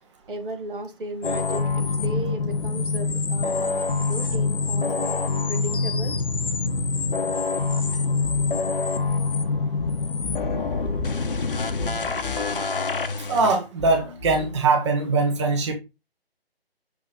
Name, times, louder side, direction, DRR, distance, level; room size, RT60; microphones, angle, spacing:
voice 1, 0.3-5.2 5.5-6.2, right 1 dB, 60° right, 1.3 m, -35 dB
sound 1, 1.2-13.6, left 4 dB, 60° left, 0.8 m, -25 dB
sound 2, 8.2-8.6 9.8-10.6 11.8-12.6 13.8-14.6, left 3 dB, 10° right, 1.4 m, -36 dB
voice 2, 13.3-15.7, right 3 dB, 30° right, 1.2 m, -21 dB
6.6 x 3.8 x 3.7 m
figure-of-eight pair, 145°, 31 cm